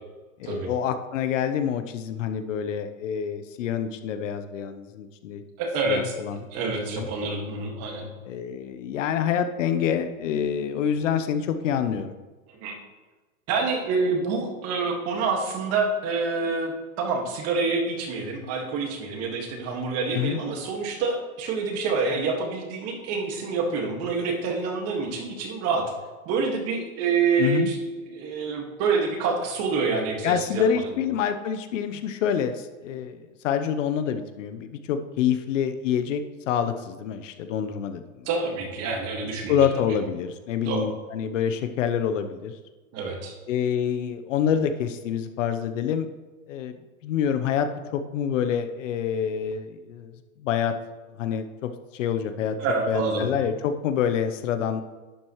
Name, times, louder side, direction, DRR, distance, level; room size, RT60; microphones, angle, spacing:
voice 1, 0.4-5.4 5.9-6.4 6.8-7.1 8.2-12.1 20.1-20.4 27.4-27.7 30.2-38.3 39.5-42.5 43.5-46.1 46.5-46.8 47.0-50.1 50.4-50.7 51.2-52.6 52.9-54.8, left 8 dB, 60° left, 9 dB, 0.9 m, -27 dB
voice 2, 5.6-6.1 6.5-8.1 12.5-12.8 13.5-25.8 26.3-27.8 28.1-30.9 38.3-40.0 40.6-40.9 42.9-43.3 52.6-53.3, right 4 dB, 35° right, 2 dB, 1.9 m, -27 dB
11.5 x 7.4 x 3.1 m, 1.2 s
hypercardioid pair, 135°, 43 cm